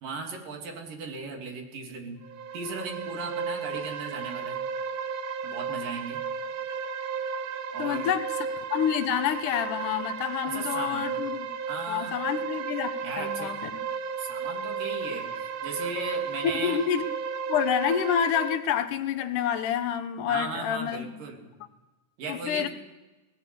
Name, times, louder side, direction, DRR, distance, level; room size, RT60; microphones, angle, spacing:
voice 1, 0.0-2.2 2.5-4.7 5.4-6.3 7.7-8.1 10.5-11.2 11.7-12.2 13.0-13.5 14.2-16.8 20.3-21.5 22.2-22.7, right 4 dB, 90° right, 2 dB, 4.5 m, -37 dB
sound 1, 2.2-18.6, right 6 dB, 70° right, 1.2 m, -34 dB
voice 2, 7.8-11.5 11.9-12.9 13.2-13.7 16.4-17.1 17.5-21.2 22.3-22.7, left 9 dB, 75° left, 10 dB, 2.5 m, -28 dB
22.0 x 18.5 x 6.9 m, 1.2 s
omnidirectional pair, 3.7 m